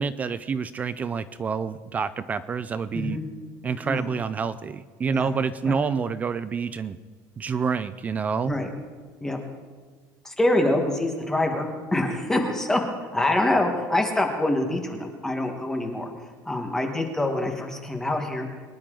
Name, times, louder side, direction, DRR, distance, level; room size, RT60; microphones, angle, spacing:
voice 1, 0.0-3.2 3.6-7.0 7.4-8.6, right 5 dB, 20° right, 14 dB, 0.3 m, -28 dB
voice 2, 10.2-16.1 16.4-18.5, left 1 dB, 5° left, 3 dB, 1.3 m, -25 dB
23.5 x 10.5 x 3.8 m, 1.5 s
cardioid pair, 170°, 8 cm